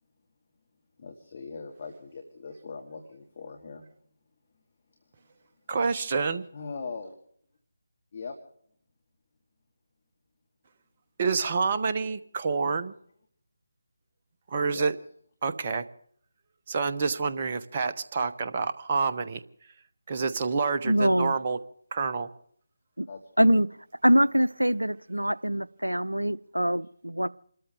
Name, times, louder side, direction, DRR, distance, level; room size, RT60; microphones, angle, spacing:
voice 1, 1.0-3.8 6.5-7.2 8.1-8.4 12.6-12.8 14.7-14.9 23.1-23.6, left 4 dB, 35° left, 3 dB, 2.1 m, -40 dB
voice 2, 5.7-6.4 11.2-12.9 14.5-15.0 15.4-15.8 16.7-19.4 20.1-21.6 21.9-22.3, right 4 dB, 30° right, 10 dB, 0.9 m, -28 dB
voice 3, 20.8-21.4 23.0-23.1 23.4-23.7 24.0-27.3, equal, 85° right, 17 dB, 0.6 m, -24 dB
28.5 x 13.5 x 3.5 m, 0.63 s
figure-of-eight pair, 155°, 0 cm